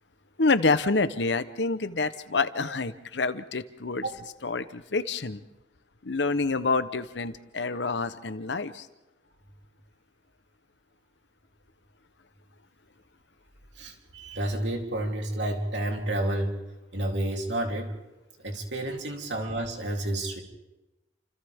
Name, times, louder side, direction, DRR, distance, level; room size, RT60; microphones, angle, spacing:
voice 1, 0.4-4.1 4.4-5.4 6.0-8.9, left 3 dB, 70° left, 13 dB, 0.9 m, -27 dB
voice 2, 13.7-16.6 16.9-17.9 18.4-20.4, right 1 dB, 75° right, 1 dB, 3.3 m, -30 dB
29.0 x 27.5 x 3.6 m, 1.0 s
head